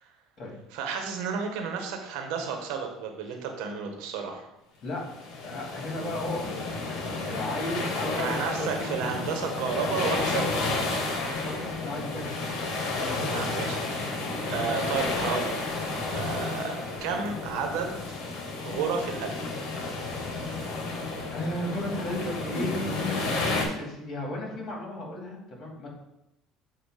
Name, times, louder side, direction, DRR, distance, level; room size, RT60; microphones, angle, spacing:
voice 1, 0.7-4.5 8.2-10.5 13.2-13.8 14.5-15.5 16.1-18.0 18.6-19.4, right 5 dB, 75° right, 4 dB, 1.1 m, -31 dB
sound 1, 5.1-23.7, left 3 dB, 70° left, 1.5 m, -31 dB
voice 2, 5.4-6.6 6.9-8.9 11.1-12.5 12.9-13.5 21.3-25.9, left 1 dB, 50° left, -1 dB, 2.5 m, -35 dB
7.9 x 2.8 x 5.0 m, 0.89 s
supercardioid pair, 90°, 0 cm